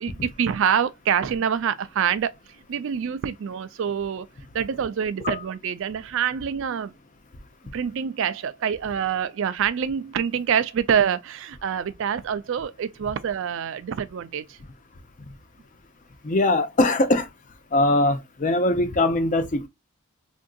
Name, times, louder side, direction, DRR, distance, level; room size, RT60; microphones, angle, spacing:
voice 1, 0.0-2.3 2.7-4.3 4.5-6.9 7.7-14.6, right 7 dB, 60° right, 0.4 m, -26 dB
voice 2, 16.2-17.3 17.7-19.7, left 2 dB, 35° left, 0.5 m, -21 dB
3.5 x 2.6 x 2.2 m
head